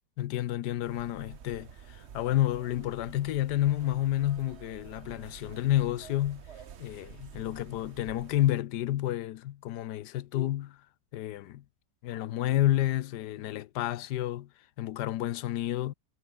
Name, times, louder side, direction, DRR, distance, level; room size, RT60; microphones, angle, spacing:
voice 1, 0.2-6.4 6.8-10.8 11.1-11.6 12.0-14.5 14.8-15.9, left 13 dB, 75° left, 1.3 m, -30 dB
sound 1, 0.8-8.5, right 8 dB, 45° right, 1.0 m, -49 dB
omnidirectional pair, 1.9 m